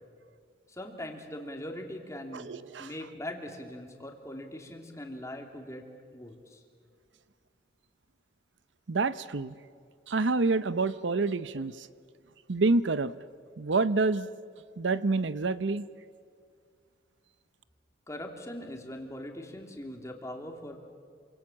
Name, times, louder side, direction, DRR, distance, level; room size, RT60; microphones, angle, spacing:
voice 1, 0.7-2.5 2.8-5.8 6.1-6.6 18.1-20.8, left 1 dB, 15° left, 3 dB, 2.9 m, -41 dB
voice 2, 2.3-2.9 8.9-9.6 10.1-11.9 12.5-13.1 13.6-14.3 14.8-15.9, right 3 dB, 80° right, 15 dB, 0.7 m, -27 dB
27.5 x 26.0 x 7.3 m, 2.2 s
head